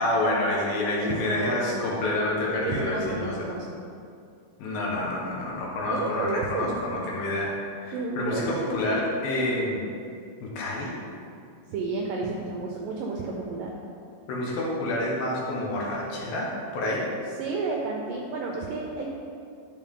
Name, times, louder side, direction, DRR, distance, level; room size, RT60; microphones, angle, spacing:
voice 1, 0.0-3.3 4.6-7.5 7.8-9.8 10.4-10.9 14.3-17.0, left 1 dB, 70° left, -4 dB, 2.9 m, -28 dB
voice 2, 1.0-2.0 2.6-3.7 5.9-6.8 7.9-8.8 11.7-13.7 17.4-19.1, right 3 dB, 80° right, -1 dB, 2.0 m, -31 dB
12.0 x 5.2 x 3.7 m, 2.4 s
omnidirectional pair, 4.6 m